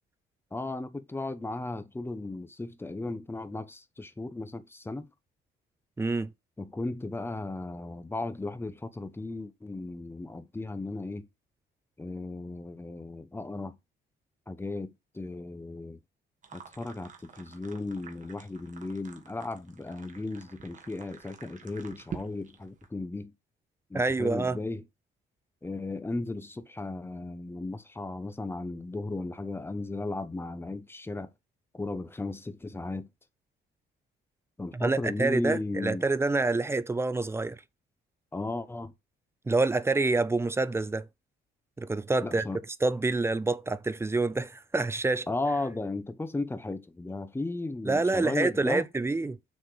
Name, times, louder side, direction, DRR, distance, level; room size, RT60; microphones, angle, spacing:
voice 1, 0.5-5.1 6.6-11.3 12.0-13.8 14.5-16.0 16.5-23.3 23.9-24.8 25.6-31.3 31.7-33.1 34.6-36.0 38.3-38.9 42.2-42.6 45.3-48.8, left 2 dB, 10° left, 0.8 m, -35 dB
voice 2, 6.0-6.3 23.9-24.6 34.7-37.6 39.5-41.1 41.8-42.5 42.8-45.3 47.9-49.4, right 3 dB, 15° right, 0.5 m, -27 dB
sound 1, 16.4-22.9, right 6 dB, 40° right, 1.5 m, -47 dB
6.7 x 4.3 x 4.7 m
cardioid pair, 120°, 19 cm